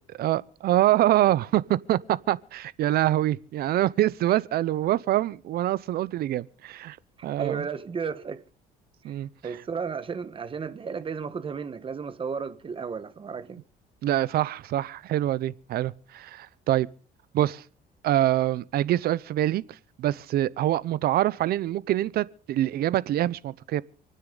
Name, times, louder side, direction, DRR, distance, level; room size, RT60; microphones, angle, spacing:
voice 1, 0.1-7.0 7.2-7.7 9.0-9.3 14.0-16.9 17.3-17.6 18.0-23.8, right 13 dB, 65° right, 0.7 m, -25 dB
voice 2, 7.4-8.4 9.0-9.1 9.4-13.6, right 6 dB, 30° right, 1.3 m, -33 dB
28.5 x 9.5 x 3.9 m
cardioid pair, 110°, 17 cm